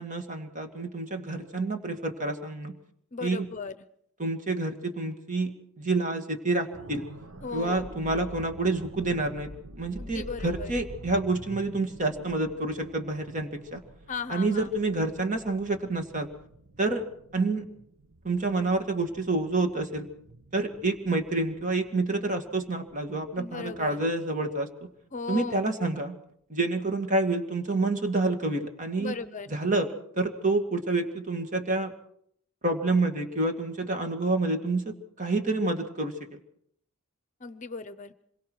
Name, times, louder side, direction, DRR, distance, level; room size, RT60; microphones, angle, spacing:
voice 1, 0.0-2.7 3.2-3.5 4.2-7.1 7.5-9.5 9.8-13.8 14.3-16.3 16.8-17.0 17.3-17.6 18.2-20.1 20.5-24.9 25.3-26.2 26.5-29.2 29.5-29.9 30.1-31.9 32.6-36.4, right 2 dB, 40° right, 5 dB, 2.2 m, -28 dB
voice 2, 3.1-3.7 7.4-7.9 10.0-10.7 14.1-14.7 23.4-24.0 25.1-25.7 29.0-29.6 37.4-38.1, left 4 dB, 35° left, 13 dB, 0.8 m, -37 dB
sound 1, 6.7-24.6 25.0-25.2, right 1 dB, 80° right, 1.2 m, -47 dB
26.5 x 22.5 x 4.7 m, 0.68 s
head